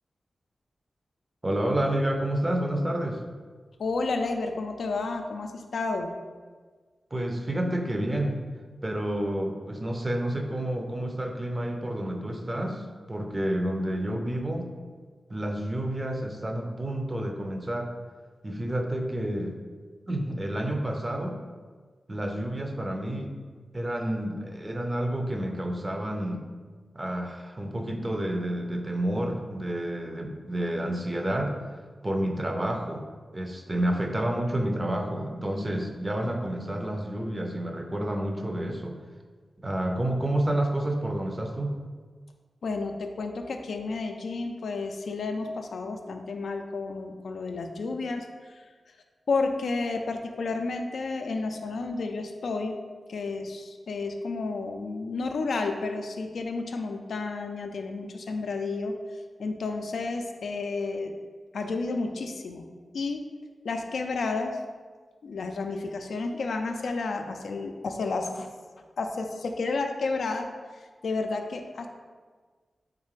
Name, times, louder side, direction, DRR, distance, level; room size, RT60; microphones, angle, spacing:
voice 1, 1.4-3.2 7.1-8.4 8.8-14.7 15.3-17.9 18.4-19.6 20.1-21.4 22.1-23.3 23.7-26.4 26.9-31.5 32.0-33.0 33.3-39.0 39.6-41.8, right 1 dB, 30° right, 3 dB, 0.5 m, -29 dB
voice 2, 3.8-6.1 42.6-48.7 49.3-52.8 53.1-59.0 59.4-61.1 61.5-62.7 62.9-63.2 63.6-64.6 65.2-68.5 69.0-70.5 70.7-71.9, left 3 dB, 80° left, 5 dB, 0.3 m, -31 dB
3.7 x 3.2 x 3.1 m, 1.5 s
cardioid pair, 50°, 0 cm